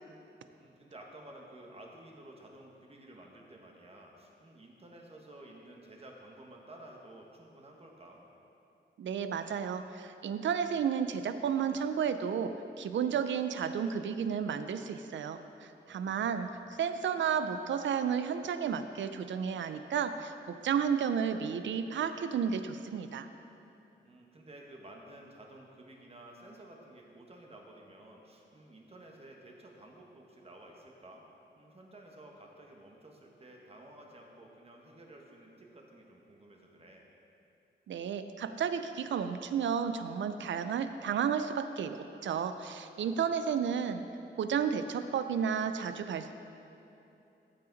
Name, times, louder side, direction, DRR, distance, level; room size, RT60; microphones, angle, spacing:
voice 1, 0.6-8.3 15.9-16.7 24.0-31.2 31.6-37.1 43.1-43.5, right 1 dB, 30° right, 0 dB, 1.3 m, -53 dB
voice 2, 9.0-12.5 12.8-16.5 16.8-23.3 37.9-44.0 44.4-46.3, right 7 dB, 80° right, 10 dB, 0.5 m, -32 dB
14.0 x 5.7 x 4.0 m, 2.9 s
wide cardioid pair, 110°, 19 cm